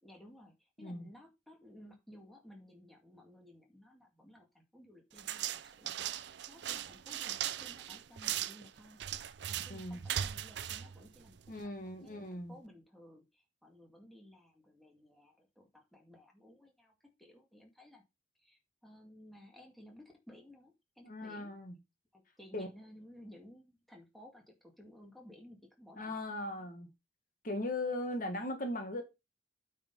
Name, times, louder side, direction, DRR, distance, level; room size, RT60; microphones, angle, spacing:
voice 1, 0.0-5.9 6.2-16.9 17.2-18.0 18.4-21.5 22.1-26.7, left 1 dB, ahead, 2.1 m, -57 dB
sound 1, 5.2-11.7, right 10 dB, 65° right, 0.5 m, -39 dB
voice 2, 9.7-10.0 11.5-12.6 21.0-21.7 22.5-22.7 26.0-26.9 27.4-29.0, left 1 dB, 45° left, 1.6 m, -38 dB
8.8 x 4.4 x 5.4 m
head